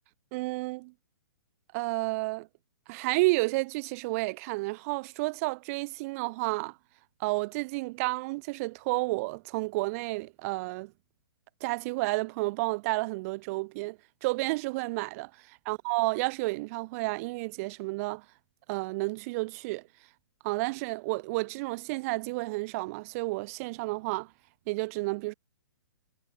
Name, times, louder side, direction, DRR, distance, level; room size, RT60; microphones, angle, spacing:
voice 1, 0.3-0.9 1.7-2.5 2.9-6.8 7.2-10.9 11.6-18.2 18.7-19.8 20.4-24.3 24.7-25.3, right 24 dB, 40° right, 1.8 m, -31 dB
hypercardioid pair, 125°, 12 cm